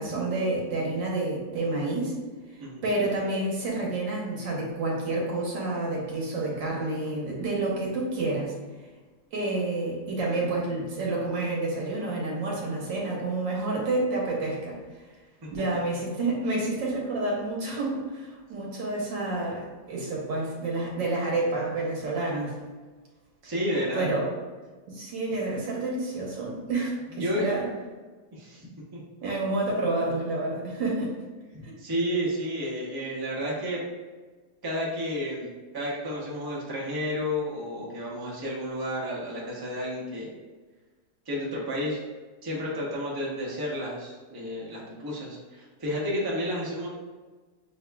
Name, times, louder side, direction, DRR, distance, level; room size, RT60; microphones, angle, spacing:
voice 1, 0.0-2.2 2.8-8.6 9.3-14.8 15.5-22.6 23.9-24.3 24.9-27.7 29.2-31.1 31.6-31.8, right 2 dB, 80° right, -3 dB, 1.7 m, -29 dB
voice 2, 23.4-24.1 27.2-27.4 28.3-29.0 31.5-33.8 34.6-40.4 41.3-42.0 42.4-46.9, equal, 25° right, -5 dB, 0.5 m, -31 dB
7.1 x 2.5 x 2.3 m, 1.4 s
omnidirectional pair, 1.9 m